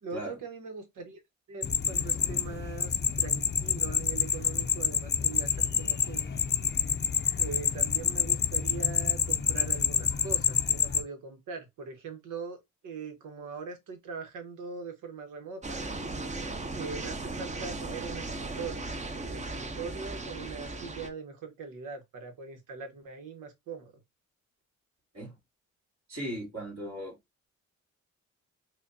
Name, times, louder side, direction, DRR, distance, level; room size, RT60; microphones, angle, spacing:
voice 1, 0.0-1.2 1.5-6.4 7.4-12.6 12.8-15.8 16.7-18.9 19.2-23.9, right 5 dB, 85° right, 1.1 m, -41 dB
sound 1, 1.6-11.0, left 7 dB, 35° left, 0.5 m, -28 dB
sound 2, 15.6-21.1, right 2 dB, 25° right, 0.6 m, -37 dB
voice 2, 26.1-27.2, right 1 dB, 60° right, 2.1 m, -37 dB
4.9 x 2.2 x 2.6 m
cardioid pair, 80°, 30 cm